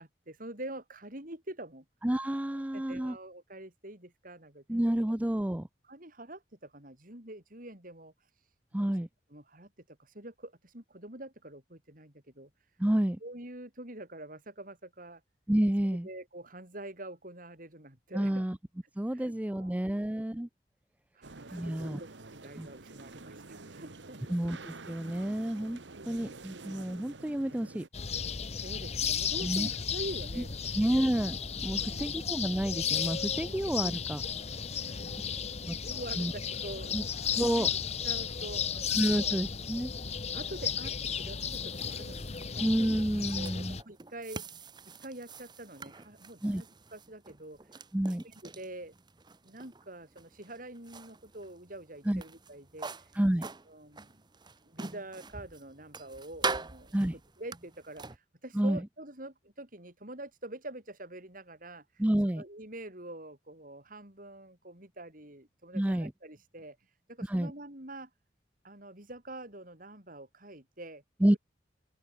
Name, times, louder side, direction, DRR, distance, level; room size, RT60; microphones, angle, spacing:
voice 1, 0.0-1.9 2.7-4.6 5.9-8.1 8.8-8.9 9.3-12.5 13.2-15.2 16.0-18.4 19.1-20.1 21.2-24.4 28.6-31.1 31.7-32.3 34.8-37.1 37.6-39.4 40.3-42.7 43.4-44.4 45.0-46.7 46.9-47.6 48.1-48.9 49.4-52.9 53.7-54.2 54.6-57.0 57.4-61.8 62.2-66.8 67.1-68.1 68.6-71.0, right 1 dB, 50° right, 7.2 m, -46 dB
voice 2, 2.0-3.2 4.7-5.7 8.7-9.1 12.8-13.2 15.5-16.1 18.1-18.6 19.0-20.5 21.5-22.0 22.6-22.7 24.3-25.8 26.1-27.8 29.4-29.7 30.7-34.2 34.5-34.8 35.6-35.8 36.2-36.3 36.9-37.0 37.4-37.7 38.9-39.9 42.6-43.8 46.4-46.6 47.9-48.2 52.1-52.2 53.1-53.5 56.9-57.1 58.5-58.8 62.0-62.4 65.7-66.1 67.2-67.5 71.2-71.4, right 1 dB, 10° right, 0.4 m, -29 dB
sound 1, 21.2-27.9, right 3 dB, 80° right, 1.6 m, -48 dB
sound 2, 27.9-43.8, left 7 dB, 35° left, 1.0 m, -34 dB
sound 3, 40.9-58.2, right 4 dB, 25° right, 1.1 m, -44 dB
open air
head